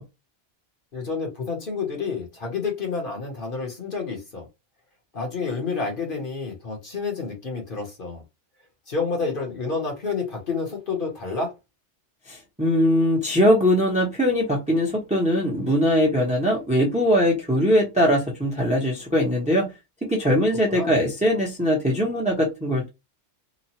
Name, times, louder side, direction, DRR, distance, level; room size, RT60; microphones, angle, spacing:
voice 1, 0.9-4.5 5.1-8.2 8.9-11.5 20.7-21.0, left 4 dB, 50° left, 1.1 m, -29 dB
voice 2, 12.3-19.7 20.1-22.9, equal, 5° right, 0.7 m, -21 dB
3.0 x 2.2 x 2.8 m
omnidirectional pair, 1.2 m